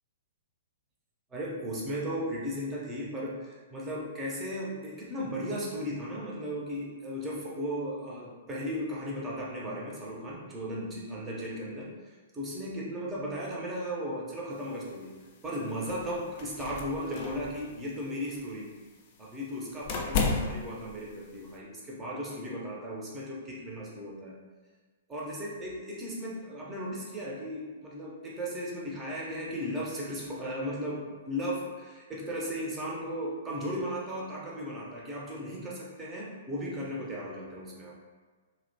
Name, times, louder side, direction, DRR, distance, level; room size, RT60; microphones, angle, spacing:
voice 1, 1.3-15.1 15.4-18.8 19.2-24.3 25.1-37.9, equal, 15° right, -5 dB, 0.6 m, -36 dB
sound 1, 14.5-21.6, left 4 dB, 40° left, 0.3 m, -35 dB
2.7 x 2.1 x 2.7 m, 1.4 s
figure-of-eight pair, 110°, 0 cm